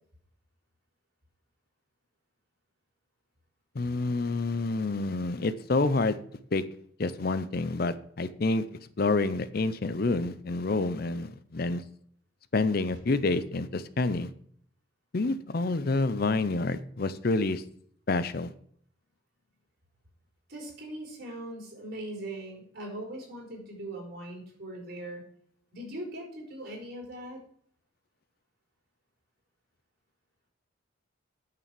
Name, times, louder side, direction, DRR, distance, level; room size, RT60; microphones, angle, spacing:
voice 1, 3.8-6.2 6.5-6.6 7.0-8.6 9.0-11.8 12.5-14.3 15.1-17.6 18.1-18.5, left 3 dB, 45° left, 14 dB, 0.5 m, -28 dB
voice 2, 20.5-25.2 25.7-27.4, right 1 dB, 50° right, -1 dB, 4.3 m, -40 dB
9.1 x 6.8 x 7.5 m, 0.64 s
head